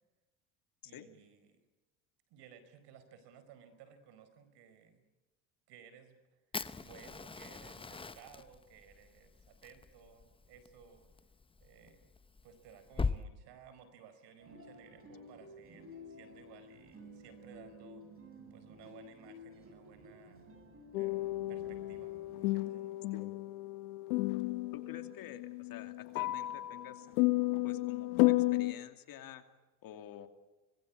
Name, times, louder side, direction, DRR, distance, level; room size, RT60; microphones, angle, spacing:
voice 1, 0.8-1.6 2.3-5.0 5.7-6.4 6.8-11.1 11.6-12.1 12.4-18.1 18.5-20.5 20.9-22.9, right 8 dB, 65° right, 11 dB, 4.9 m, -58 dB
Fire, 6.5-13.2, left 4 dB, 10° left, 0.8 m, -41 dB
sound 1, 14.4-22.5, left 1 dB, 30° right, 7.6 m, -54 dB
sound 2, 20.9-28.7, left 20 dB, 85° left, 1.1 m, -33 dB
voice 2, 24.7-27.1 27.6-29.4 29.8-30.3, left 10 dB, 50° left, 7 dB, 2.6 m, -49 dB
25.5 x 20.0 x 8.5 m, 1.1 s
supercardioid pair, 105°, 45 cm